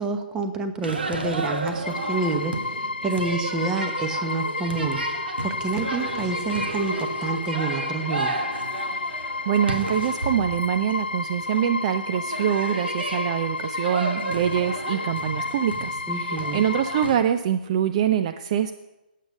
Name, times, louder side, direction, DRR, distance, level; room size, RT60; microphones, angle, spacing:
voice 1, 0.0-5.0 5.4-8.3 16.1-16.7, right 4 dB, 15° right, 6 dB, 1.1 m, -28 dB
sound 1, 0.8-17.2, right 2 dB, 85° right, 1.5 m, -33 dB
sound 2, 1.8-17.1, left 3 dB, 85° left, 0.7 m, -31 dB
voice 2, 9.1-18.7, right 9 dB, 40° right, 9 dB, 0.5 m, -25 dB
8.5 x 8.4 x 6.4 m, 1.0 s
hypercardioid pair, 140°, 5 cm